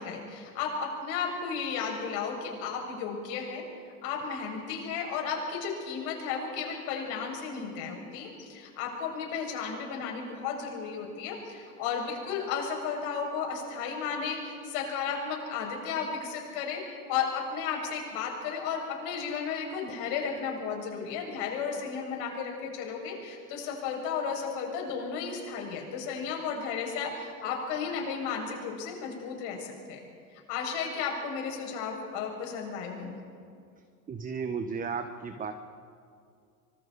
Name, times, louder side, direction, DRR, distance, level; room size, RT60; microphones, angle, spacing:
voice 1, 0.0-3.6 4.0-30.0 30.3-33.2, left 6 dB, 50° left, 1 dB, 6.6 m, -34 dB
voice 2, 34.1-35.5, right 5 dB, 15° right, 7 dB, 1.2 m, -34 dB
25.5 x 25.0 x 4.2 m, 2.3 s
hypercardioid pair, 110°, 49 cm